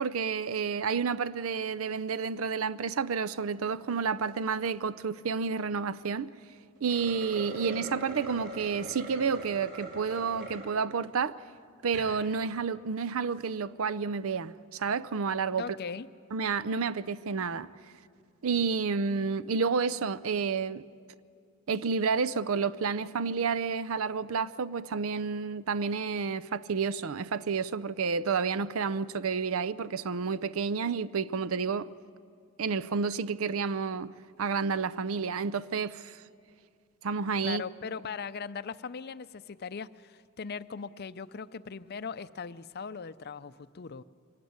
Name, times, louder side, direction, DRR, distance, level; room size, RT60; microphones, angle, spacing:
voice 1, 0.0-6.3 6.8-11.4 11.8-15.8 16.3-17.7 18.4-20.9 21.7-31.9 32.6-34.1 34.4-36.2 37.0-37.6, right 5 dB, 70° right, 0.5 m, -30 dB
sound 1, 6.8-10.7 11.2-11.3 11.8-12.1, right 2 dB, 55° right, 7.1 m, -42 dB
voice 2, 15.6-16.1 37.4-44.0, left 5 dB, 45° left, 0.5 m, -39 dB
23.5 x 19.0 x 9.5 m
head